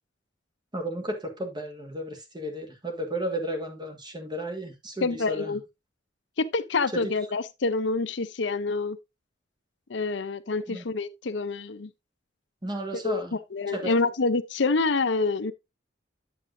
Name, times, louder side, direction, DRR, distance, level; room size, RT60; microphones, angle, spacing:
voice 1, 0.7-5.6 6.9-7.0 10.7-10.8 12.6-13.4 13.7-13.9, right 1 dB, 25° right, 1.6 m, -33 dB
voice 2, 5.0-5.6 6.4-9.0 9.9-11.9 12.9-15.5, left 3 dB, 70° left, 0.7 m, -27 dB
9.1 x 8.0 x 2.6 m
head